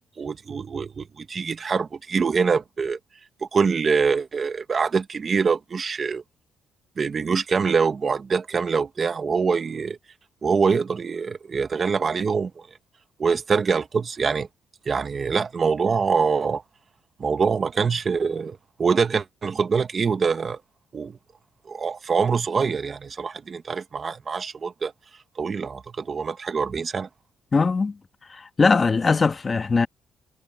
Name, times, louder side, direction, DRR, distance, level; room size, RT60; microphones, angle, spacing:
voice 1, 0.2-3.0 3.5-6.2 7.0-10.0 10.4-12.5 13.2-14.5 14.8-16.6 17.2-20.6 20.9-21.2 21.7-24.9 25.4-27.1, right 5 dB, 40° right, 1.4 m, -24 dB
voice 2, 27.5-28.0 28.3-29.9, left 4 dB, 30° left, 1.7 m, -20 dB
cardioid pair, 90°, 0 cm